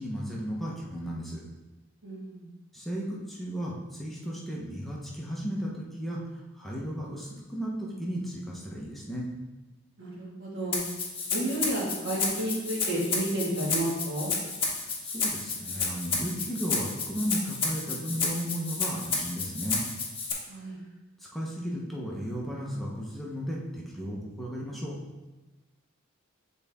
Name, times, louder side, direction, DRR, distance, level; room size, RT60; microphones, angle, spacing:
voice 1, 0.0-1.4 2.7-6.2 6.5-9.3 14.8-19.8 21.2-25.0, equal, ahead, -5 dB, 0.9 m, -35 dB
voice 2, 2.0-2.5 10.0-10.8 11.3-14.3 20.5-20.8, right 1 dB, 65° right, -5 dB, 2.0 m, -31 dB
Rattle (instrument), 10.7-20.3, left 4 dB, 30° left, 1.1 m, -31 dB
7.9 x 4.1 x 3.6 m, 1.1 s
head